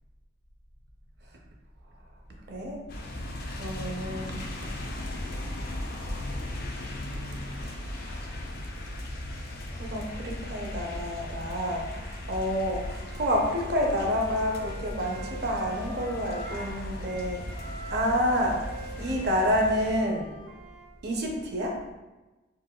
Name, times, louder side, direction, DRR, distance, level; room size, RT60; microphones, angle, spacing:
voice 1, 2.5-2.8 3.6-4.4 8.0-8.1 9.8-17.6 17.9-18.6 19.0-20.3 21.0-21.8, equal, 55° right, 0 dB, 0.5 m, -29 dB
sound 1, 2.9-20.0, left 1 dB, 50° left, 0.4 m, -37 dB
Wind instrument woodwind instrument, 13.0-16.7 17.0-20.9, right 1 dB, 75° right, 0.9 m, -44 dB
4.0 x 2.2 x 2.2 m, 1.1 s
head